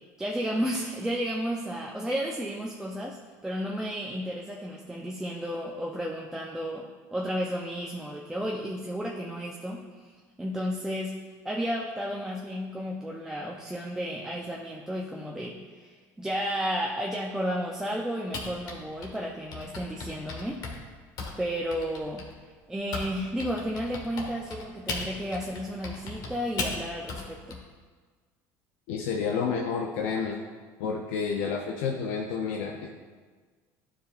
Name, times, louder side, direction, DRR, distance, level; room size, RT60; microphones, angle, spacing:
voice 1, 0.2-20.6 21.4-22.3 22.7-27.6, equal, 5° right, -2 dB, 0.6 m, -33 dB
Typing, 18.3-23.1 23.4-27.6, left 3 dB, 55° left, 1.5 m, -36 dB
voice 2, 28.9-30.4 30.8-32.9, left 6 dB, 80° left, 0 dB, 0.6 m, -30 dB
11.0 x 5.0 x 2.5 m, 1.5 s
supercardioid pair, 110°, 8 cm